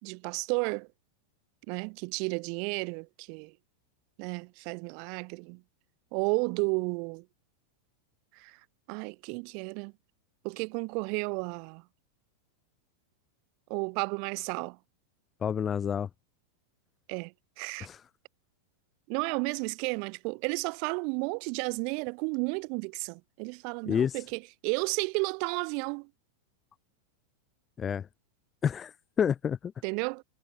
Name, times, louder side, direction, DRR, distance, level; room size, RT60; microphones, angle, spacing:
voice 1, 0.0-0.9 1.7-3.5 4.2-5.6 6.1-7.2 8.3-8.6 8.9-9.9 10.4-11.8 13.7-14.8 17.1-17.9 19.1-26.1 29.8-30.2, right 38 dB, 45° right, 1.4 m, -32 dB
voice 2, 15.4-16.1 17.8-18.0 23.9-24.2 27.8-28.1 28.6-29.7, left 8 dB, 20° left, 1.3 m, -29 dB
figure-of-eight pair, 90°, 0 cm